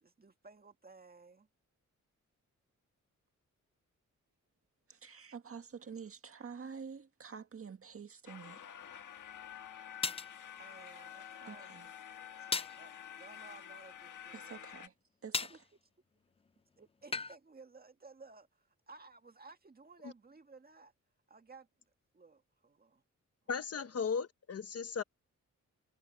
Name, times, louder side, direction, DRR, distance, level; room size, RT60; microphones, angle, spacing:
voice 1, 0.0-1.5 5.8-6.1 10.6-12.0 12.8-14.8 15.4-15.6 16.8-20.9 21.3-21.7 22.1-23.0 23.4-24.0, right 3 dB, 30° right, 1.8 m, -57 dB
voice 2, 4.9-8.6 11.5-11.9 14.3-14.9 15.2-15.6, right 6 dB, 45° right, 1.8 m, -48 dB
sound 1, 8.3-14.9, left 9 dB, 80° left, 1.5 m, -49 dB
sound 2, 8.9-9.0 10.0-10.3 12.5-12.8 15.3-15.6 17.1-17.4, left 5 dB, 20° left, 0.3 m, -35 dB
voice 3, 23.5-25.0, left 6 dB, 55° left, 1.2 m, -36 dB
wide cardioid pair, 110°, 30 cm